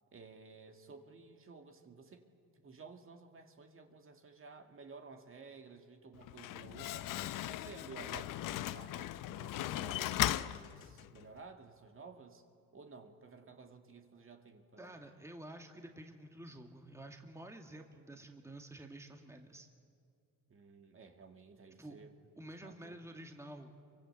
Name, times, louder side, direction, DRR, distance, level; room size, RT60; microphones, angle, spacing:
voice 1, 0.1-2.2 2.5-7.1 7.5-12.4 12.7-15.0 20.5-22.1 22.6-22.9, right 4 dB, 40° right, 4 dB, 2.3 m, -54 dB
Slam, 6.1-11.3, left 14 dB, 80° left, 0.8 m, -38 dB
voice 2, 14.8-19.7 21.8-22.0 22.4-23.7, right 1 dB, 10° right, 4 dB, 2.0 m, -50 dB
27.5 x 24.5 x 8.2 m, 2.3 s
cardioid pair, 105°, 32 cm